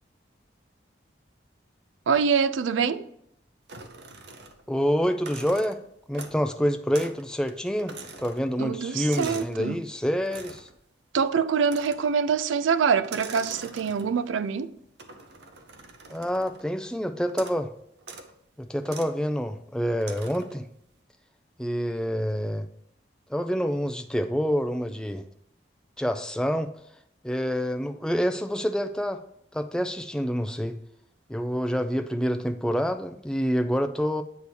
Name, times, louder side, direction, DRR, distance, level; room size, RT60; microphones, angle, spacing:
voice 1, 2.1-3.1 8.6-9.8 11.1-14.8, right 6 dB, 90° right, 0.4 m, -25 dB
sound 1, 3.7-4.8 5.1-6.5 6.9-7.2 7.5-9.6 10.3-10.8 11.7-12.2 13.0-14.3 15.0-16.7 17.3-17.7 18.0-18.3 18.9-19.2 20.0-20.6, right 3 dB, 60° right, 0.8 m, -43 dB
voice 2, 4.7-5.8 6.1-10.7 16.1-17.7 18.6-20.7 21.6-22.7 23.3-25.2 26.0-26.7 27.2-29.2 29.5-30.8 31.3-34.2, equal, 5° left, 0.4 m, -27 dB
8.3 x 2.8 x 6.2 m
head